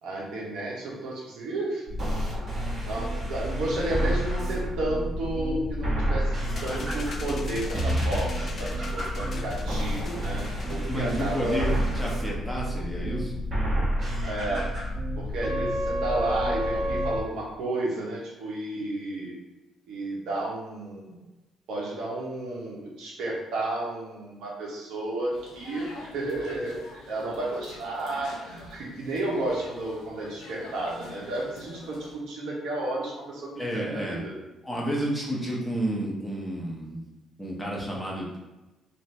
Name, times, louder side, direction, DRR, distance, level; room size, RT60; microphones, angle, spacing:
voice 1, 0.0-1.8 2.8-6.4 6.6-11.7 14.3-14.7 15.2-19.3 19.9-21.2 21.7-34.3, right 2 dB, 80° right, -4 dB, 0.9 m, -32 dB
sound 1, 1.9-17.2, equal, 45° right, 1.3 m, -29 dB
sound 2, 6.4-12.2, left 3 dB, 50° left, 0.4 m, -41 dB
voice 2, 10.9-13.4 33.6-34.2 34.6-37.0 37.4-38.4, right 1 dB, ahead, -4 dB, 0.9 m, -31 dB
sound 3, 25.3-32.1, left 3 dB, 85° left, 0.7 m, -46 dB
2.6 x 2.5 x 3.2 m, 1.0 s
cardioid pair, 80°, 0 cm